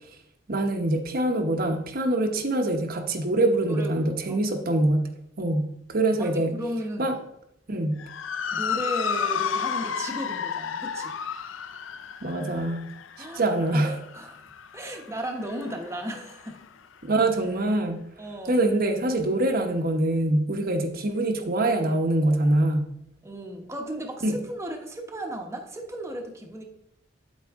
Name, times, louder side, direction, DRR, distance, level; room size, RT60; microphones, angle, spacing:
voice 1, 0.5-5.1 5.4-6.5 7.0-7.1 7.7-8.0 12.2-12.9 13.2-14.0 17.0-18.0 18.5-22.9 24.2-24.4, right 1 dB, 50° right, 4 dB, 1.0 m, -24 dB
voice 2, 3.7-4.4 6.2-7.1 8.5-11.1 13.2-14.4 14.7-16.7 18.2-18.5 23.2-26.6, right 1 dB, 15° right, 2 dB, 1.0 m, -35 dB
Motor vehicle (road) / Siren, 8.0-16.6, left 7 dB, 85° left, 0.5 m, -32 dB
8.9 x 8.3 x 3.6 m, 0.77 s
head